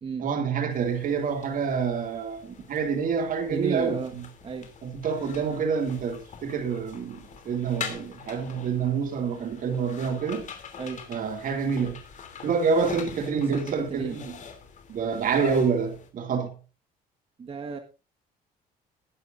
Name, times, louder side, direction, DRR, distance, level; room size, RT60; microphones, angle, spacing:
voice 1, 0.2-4.2 4.8-10.5 11.1-12.0 12.4-14.3 14.9-16.5, right 6 dB, 55° right, 2.3 m, -27 dB
sound 1, 0.7-16.1, left 6 dB, 45° left, 2.9 m, -43 dB
voice 2, 3.5-4.1 4.4-4.7 10.8-11.0 13.4-14.2 17.4-17.8, right 5 dB, 35° right, 1.5 m, -33 dB
20.0 x 9.9 x 2.6 m
cardioid pair, 110°, 17 cm